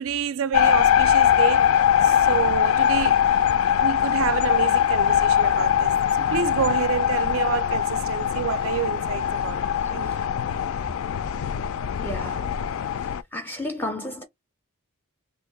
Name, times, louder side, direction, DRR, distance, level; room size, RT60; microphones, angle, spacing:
voice 1, 0.0-1.7 2.0-3.2 3.8-5.9 6.2-9.6 9.9-10.1, right 7 dB, 65° right, 0.3 m, -28 dB
sound 1, 0.5-13.2, left 9 dB, 65° left, 0.3 m, -22 dB
voice 2, 12.0-12.5 13.3-14.2, left 1 dB, 10° left, 0.5 m, -32 dB
2.9 x 2.2 x 3.5 m
head